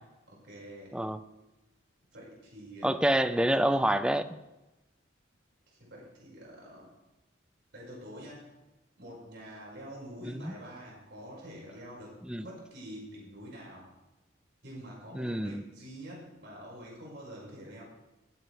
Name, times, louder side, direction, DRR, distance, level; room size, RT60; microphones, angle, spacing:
voice 1, 0.3-0.9 2.1-3.0 5.7-6.9 7.7-8.5 9.0-13.9 14.6-17.8, equal, 65° right, -4 dB, 5.5 m, -46 dB
voice 2, 2.8-4.3 10.3-10.5 12.3-12.4 15.1-15.6, right 1 dB, 5° right, 11 dB, 0.4 m, -27 dB
20.0 x 9.0 x 3.4 m, 1.0 s
head